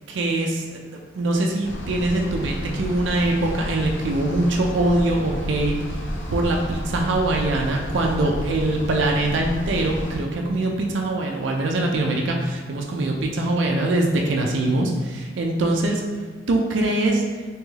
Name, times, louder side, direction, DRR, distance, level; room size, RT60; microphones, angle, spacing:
voice 1, 0.1-0.8 1.1-5.7 6.3-16.0 16.5-17.2, right 2 dB, 75° right, 1 dB, 0.4 m, -23 dB
sound 1, 1.6-10.2, equal, 80° left, 0.6 m, -31 dB
3.4 x 3.0 x 3.1 m, 1.5 s
head